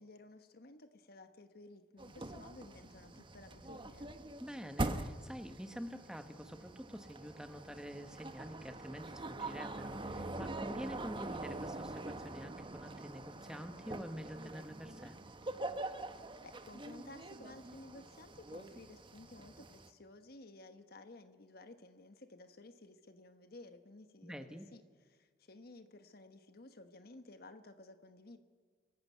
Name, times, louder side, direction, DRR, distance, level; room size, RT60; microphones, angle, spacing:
voice 1, 0.0-4.1 16.4-28.4, left 2 dB, 60° left, 9 dB, 1.2 m, -55 dB
sound 1, 2.0-19.9, right 2 dB, 30° right, 1.1 m, -44 dB
voice 2, 4.4-15.2 24.2-24.6, equal, 5° right, 7 dB, 1.3 m, -47 dB
25.0 x 15.0 x 9.5 m, 1.5 s
head